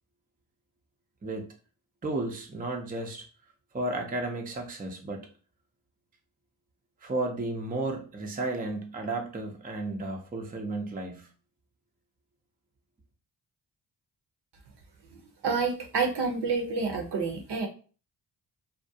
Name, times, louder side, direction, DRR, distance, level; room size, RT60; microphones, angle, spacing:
voice 1, 2.0-3.3 3.7-5.3 7.0-11.3, right 2 dB, 20° right, 0.5 m, -33 dB
voice 2, 15.4-17.7, right 4 dB, 60° right, 0.7 m, -28 dB
2.3 x 2.1 x 2.6 m
supercardioid pair, 45°, 46 cm